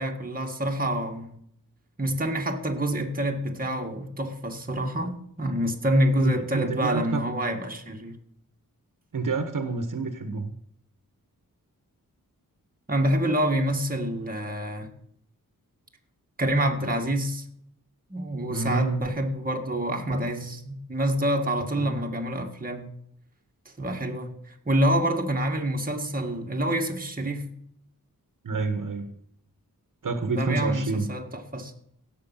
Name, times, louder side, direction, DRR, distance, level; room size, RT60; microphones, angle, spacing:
voice 1, 0.0-1.3 2.0-8.2 12.9-14.9 16.4-17.4 18.1-22.9 23.8-27.5 30.3-31.2 31.5-31.7, right 1 dB, 25° right, 1.9 m, -27 dB
voice 2, 6.2-7.2 9.1-10.5 18.5-19.0 21.8-22.0 28.4-29.1 30.0-31.1, right 3 dB, 65° right, 1.5 m, -28 dB
17.0 x 6.8 x 5.8 m
wide cardioid pair, 135°, 34 cm